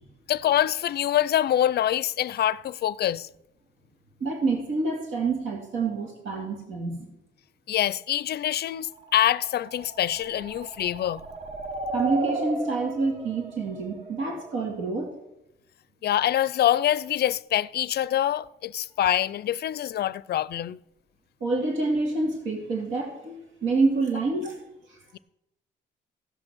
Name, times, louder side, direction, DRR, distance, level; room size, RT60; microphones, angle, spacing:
voice 1, 0.3-3.3 7.7-11.2 16.0-20.8, left 11 dB, 55° left, 0.4 m, -25 dB
voice 2, 4.2-7.1 11.9-15.1 21.4-24.6 24.9-25.0, right 3 dB, 75° right, 2.5 m, -27 dB
sound 1, 8.9-14.7, right 3 dB, 30° right, 1.2 m, -35 dB
16.0 x 6.2 x 6.2 m
cardioid pair, 90°, 20 cm